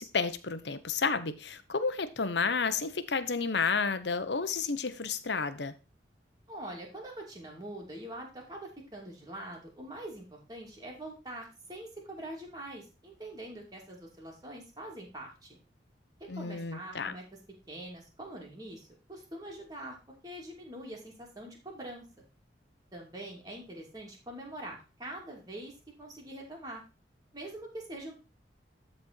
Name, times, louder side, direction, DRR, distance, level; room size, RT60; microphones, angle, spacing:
voice 1, 0.0-5.7 16.3-17.1, left 5 dB, 75° left, 0.9 m, -31 dB
voice 2, 6.5-15.6 16.3-17.2 17.7-20.0 20.2-22.0 22.9-25.7 26.0-26.8 27.3-28.1, right 1 dB, 20° right, 2.8 m, -44 dB
12.5 x 4.4 x 4.3 m
head